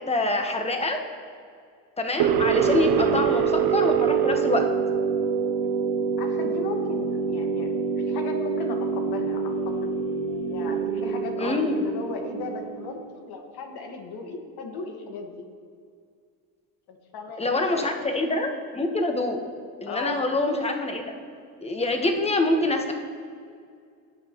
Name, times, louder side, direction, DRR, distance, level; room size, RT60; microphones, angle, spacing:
voice 1, 0.1-1.0 2.0-4.6 11.4-11.8 17.4-19.4 19.8-21.1 21.6-22.9, left 2 dB, 15° left, 4 dB, 1.4 m, -25 dB
sound 1, 2.2-13.1, right 6 dB, 70° right, 0.8 m, -25 dB
voice 2, 6.2-9.9 10.5-15.3 16.9-18.1 19.8-20.2, left 3 dB, 65° left, 3 dB, 1.7 m, -37 dB
17.5 x 7.4 x 3.1 m, 2.2 s
supercardioid pair, 85°, 40 cm